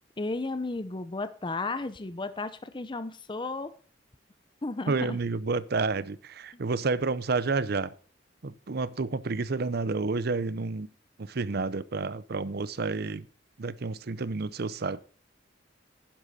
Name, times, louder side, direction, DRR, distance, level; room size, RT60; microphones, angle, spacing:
voice 1, 0.2-3.7 4.6-5.2 6.5-6.6, left 3 dB, 25° left, 0.7 m, -34 dB
voice 2, 4.9-7.9 8.4-10.9 11.2-13.3 13.6-15.0, right 3 dB, 55° right, 0.6 m, -30 dB
11.0 x 10.5 x 4.2 m
head